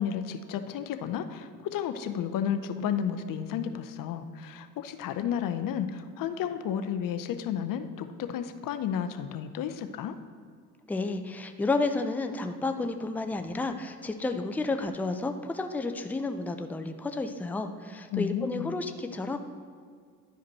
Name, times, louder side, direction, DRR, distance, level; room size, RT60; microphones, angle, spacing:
voice 1, 0.0-10.1 18.1-18.7, left 8 dB, 45° left, 9 dB, 0.6 m, -32 dB
voice 2, 10.9-19.4, left 3 dB, 5° left, 7 dB, 0.5 m, -31 dB
11.5 x 5.0 x 4.1 m, 2.1 s
hypercardioid pair, 70°, 45 cm